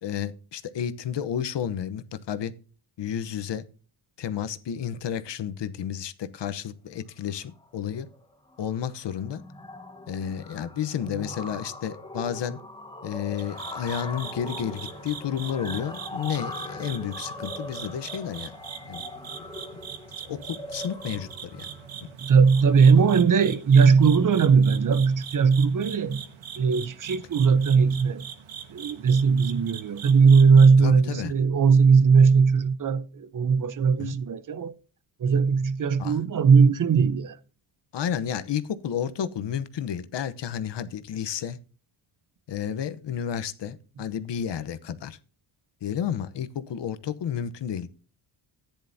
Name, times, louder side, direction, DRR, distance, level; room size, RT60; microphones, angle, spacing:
voice 1, 0.0-2.5 3.0-3.6 4.2-8.1 8.6-9.4 10.1-12.6 13.0-18.5 18.9-19.0 20.3-21.7 30.8-31.3 34.0-34.2 36.0-36.2 37.9-41.6 42.5-45.2 45.8-47.9, left 9 dB, 60° left, 1.0 m, -31 dB
sound 1, 7.4-7.7 8.0-8.2 8.5-23.4, left 2 dB, 10° left, 1.2 m, -41 dB
sound 2, 13.4-30.7, right 8 dB, 65° right, 1.6 m, -42 dB
voice 2, 22.2-26.2 26.6-28.3 28.7-34.7 35.2-37.4, right 5 dB, 40° right, 0.8 m, -19 dB
14.0 x 10.0 x 2.7 m
cardioid pair, 130°, 49 cm